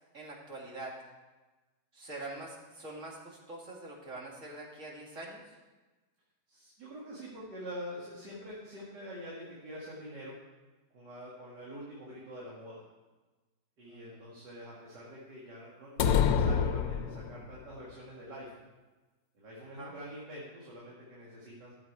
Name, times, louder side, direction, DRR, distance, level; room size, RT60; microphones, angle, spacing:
voice 1, 0.1-1.0 1.9-5.6 13.9-14.2 19.6-19.9, right 2 dB, 45° right, -2 dB, 2.2 m, -44 dB
voice 2, 6.5-10.3 10.9-12.8 13.8-18.7 19.3-21.7, equal, 80° right, -5 dB, 2.5 m, -45 dB
sound 1, 16.0-17.6, left 7 dB, 70° left, 1.0 m, -27 dB
13.0 x 7.4 x 4.7 m, 1.2 s
omnidirectional pair, 1.8 m